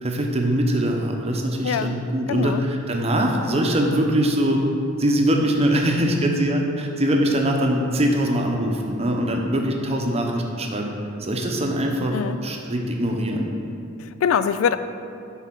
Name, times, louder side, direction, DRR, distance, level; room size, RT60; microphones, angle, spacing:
voice 1, 0.0-4.6 5.0-10.9 11.2-13.5, right 1 dB, 30° right, 1 dB, 0.8 m, -22 dB
voice 2, 1.6-1.9 2.3-2.6 12.1-12.4 14.0-14.8, left 7 dB, 75° left, 12 dB, 0.3 m, -23 dB
7.8 x 4.1 x 6.0 m, 2.6 s
head